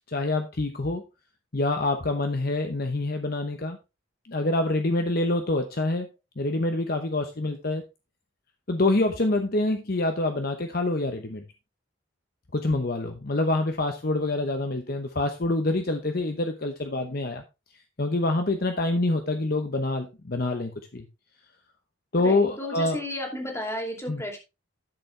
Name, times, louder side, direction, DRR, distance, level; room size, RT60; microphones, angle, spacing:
voice 1, 0.1-1.0 1.5-3.8 4.3-6.1 6.4-7.8 8.7-11.4 12.5-17.4 18.0-21.1 22.1-23.0 24.1-24.2, left 2 dB, 45° left, 5 dB, 0.9 m, -26 dB
voice 2, 22.2-24.4, left 1 dB, 15° left, 2 dB, 2.6 m, -33 dB
12.0 x 6.8 x 3.3 m, 0.26 s
head